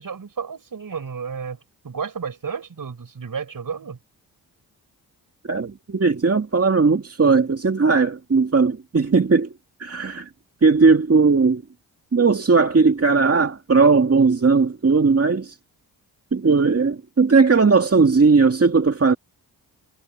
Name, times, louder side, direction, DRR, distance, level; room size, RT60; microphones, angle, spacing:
voice 1, 0.0-1.6 1.8-4.0, right 6 dB, 50° right, 5.3 m, -32 dB
voice 2, 5.5-9.5 9.8-10.3 10.6-11.6 12.1-15.6 16.3-19.2, right 4 dB, 35° right, 2.1 m, -17 dB
supercardioid pair, 50°, 41 cm